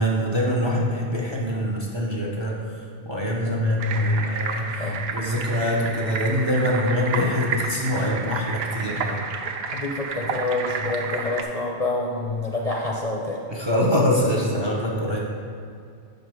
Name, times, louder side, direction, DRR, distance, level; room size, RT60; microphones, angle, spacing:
voice 1, 0.0-2.6 3.1-9.2 13.5-15.2, equal, 30° right, -3 dB, 0.6 m, -24 dB
voice 2, 3.4-4.2 4.8-5.0 5.5-5.6 6.7-6.8 7.9-8.1 9.7-13.4, left 3 dB, 45° left, -2 dB, 0.6 m, -27 dB
sound 1, 3.8-11.4, right 5 dB, 65° right, 0.8 m, -31 dB
5.9 x 5.3 x 4.7 m, 2.3 s
omnidirectional pair, 1.2 m